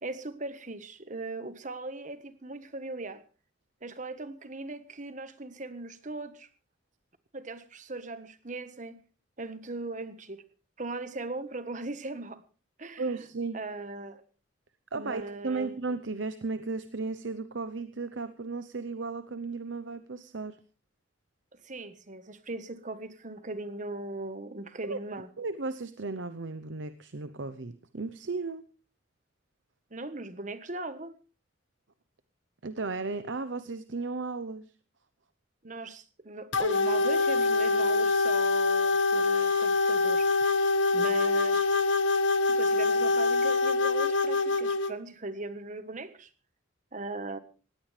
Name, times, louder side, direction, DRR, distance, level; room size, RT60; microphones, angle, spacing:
voice 1, 0.0-3.2 3.8-6.5 7.3-9.0 9.4-10.4 10.8-12.4 12.8-13.1 13.5-14.2 14.9-15.8 21.5-25.3 29.9-31.2 35.6-40.3 40.9-41.7 42.5-46.3 46.9-47.4, right 2 dB, 40° right, 1.4 m, -39 dB
voice 2, 13.0-13.6 14.9-20.6 24.9-25.0 25.4-28.6 32.6-34.6, right 3 dB, 75° right, 0.8 m, -35 dB
sound 1, 36.5-44.9, left 3 dB, 80° left, 1.3 m, -25 dB
19.5 x 16.5 x 3.4 m
head